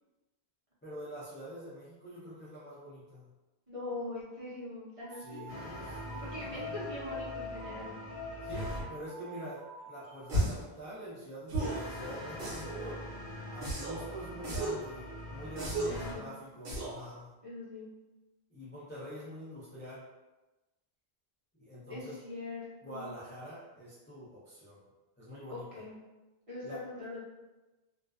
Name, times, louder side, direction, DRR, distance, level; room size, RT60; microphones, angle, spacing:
voice 1, 0.8-3.3 5.1-6.8 8.4-13.0 13.5-17.3 18.5-20.0 21.6-22.2 22.8-24.8 25.2-25.8 26.6-26.8, equal, 15° left, -9 dB, 0.4 m, -45 dB
voice 2, 3.7-5.5 6.2-7.9 15.8-16.3 17.4-17.9 21.9-23.1 25.5-26.0 26.5-27.2, left 2 dB, 40° right, -9 dB, 0.6 m, -42 dB
sound 1, 5.0-10.4, left 2 dB, 50° left, 0.9 m, -45 dB
sound 2, 5.5-8.9 11.6-16.2, left 1 dB, 75° left, 1.1 m, -43 dB
sound 3, 10.3-10.7 11.5-11.9 12.4-12.9 13.6-14.0 14.4-14.9 15.6-16.0 16.6-17.0, right 1 dB, 65° right, 1.0 m, -34 dB
2.4 x 2.2 x 2.3 m, 1.1 s
omnidirectional pair, 1.1 m